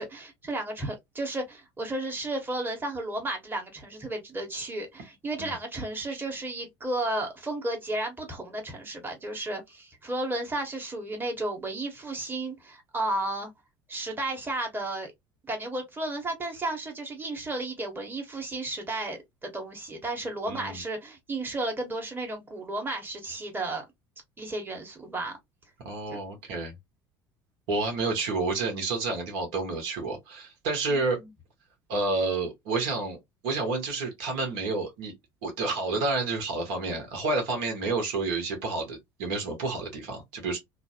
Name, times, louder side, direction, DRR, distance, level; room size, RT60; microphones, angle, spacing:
voice 1, 0.0-13.5 13.9-15.1 15.5-23.8 24.4-25.3 26.1-26.2 30.9-31.3, right 2 dB, 15° right, 1.1 m, -33 dB
voice 2, 20.5-20.8 25.8-26.7 27.7-31.2 31.9-33.2 33.4-35.1 35.4-40.6, right 3 dB, 60° right, 1.1 m, -29 dB
3.1 x 2.1 x 2.7 m
figure-of-eight pair, 65°, 13 cm